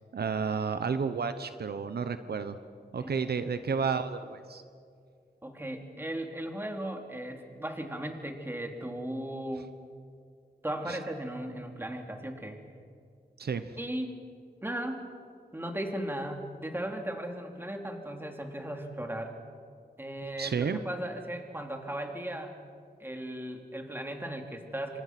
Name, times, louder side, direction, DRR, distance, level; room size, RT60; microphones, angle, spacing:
voice 1, 0.1-2.6 2.9-4.6 10.9-11.0 13.4-13.6 20.4-20.8, right 5 dB, 75° right, 10 dB, 1.1 m, -31 dB
voice 2, 3.0-3.5 5.4-9.7 10.6-12.6 13.8-14.2 14.6-15.1 15.5-19.4 20.0-22.6 23.0-25.0, right 1 dB, 15° right, 3 dB, 3.2 m, -37 dB
28.5 x 25.5 x 6.1 m, 2.3 s
wide cardioid pair, 100°, 16 cm